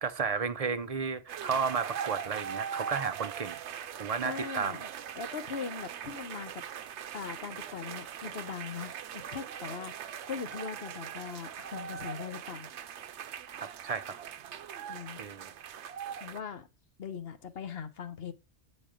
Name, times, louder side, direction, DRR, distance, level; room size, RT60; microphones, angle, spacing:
voice 1, 0.0-3.6 4.0-4.8 13.6-14.1 15.2-15.5, right 5 dB, 45° right, 0.5 m, -33 dB
sound 1, 1.3-16.4, right 8 dB, 80° right, 0.9 m, -41 dB
voice 2, 4.2-4.9 5.2-6.6 7.1-12.7 14.9-15.2 16.2-16.7 17.0-18.3, left 6 dB, 60° left, 1.1 m, -40 dB
8.9 x 4.2 x 5.0 m
omnidirectional pair, 1.2 m